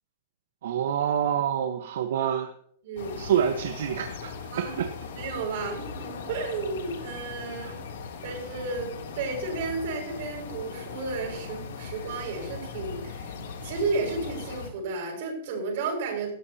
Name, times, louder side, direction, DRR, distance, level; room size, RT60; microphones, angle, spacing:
voice 1, 0.6-2.5 3.2-4.8 7.6-7.7, right 9 dB, 70° right, 7 dB, 1.1 m, -27 dB
voice 2, 2.8-3.2 4.5-4.8 5.1-7.8 8.2-13.3 13.6-16.3, right 3 dB, 50° right, 2 dB, 5.9 m, -32 dB
sound 1, 3.0-14.7, left 5 dB, 75° left, 2.9 m, -39 dB
18.5 x 13.5 x 2.8 m, 0.65 s
supercardioid pair, 170°, 0 cm